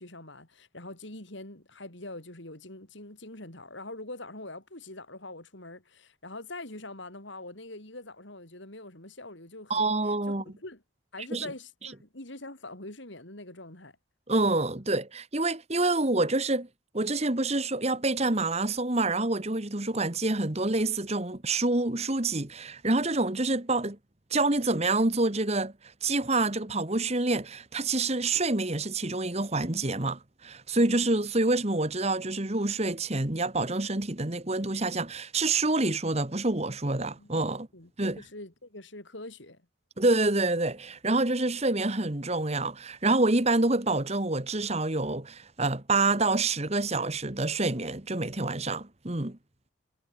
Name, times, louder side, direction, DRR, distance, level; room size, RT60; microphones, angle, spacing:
voice 1, 0.0-10.8 11.1-14.0 37.2-37.4 37.7-39.6, left 2 dB, 65° left, 4.2 m, -44 dB
voice 2, 9.7-10.4 11.3-11.5 14.3-16.7 16.9-24.0 24.3-25.7 26.0-37.7 38.0-38.2 40.0-49.4, right 2 dB, 30° right, 1.6 m, -27 dB
head